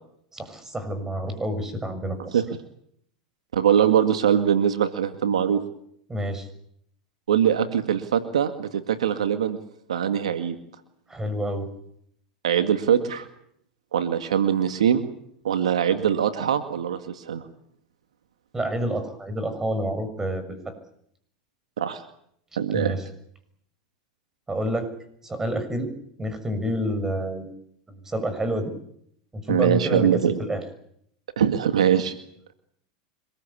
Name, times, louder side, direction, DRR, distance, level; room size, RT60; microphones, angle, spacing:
voice 1, 0.3-2.4 6.1-6.5 11.1-11.7 18.5-20.7 22.7-23.0 24.5-24.9 25.2-25.9 26.2-27.5 27.9-28.7 29.3-30.6, right 1 dB, 15° right, 10 dB, 6.6 m, -28 dB
voice 2, 3.5-5.6 7.3-9.6 9.9-10.6 12.4-13.3 13.9-15.1 15.4-17.4 21.8-22.0 22.6-22.9 29.5-30.4 31.4-32.1, right 9 dB, 90° right, 9 dB, 2.0 m, -22 dB
25.0 x 21.5 x 8.6 m, 0.70 s
hypercardioid pair, 105°, 3 cm